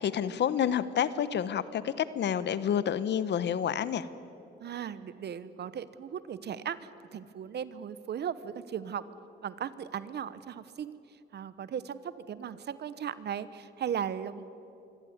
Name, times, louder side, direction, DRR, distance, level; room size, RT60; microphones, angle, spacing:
voice 1, 0.0-4.1, left 9 dB, 60° left, 15 dB, 1.0 m, -29 dB
voice 2, 4.6-9.0 9.4-11.0 11.3-14.4, right 8 dB, 55° right, 15 dB, 1.0 m, -37 dB
24.0 x 16.0 x 9.6 m, 2.8 s
cardioid pair, 90°, 20 cm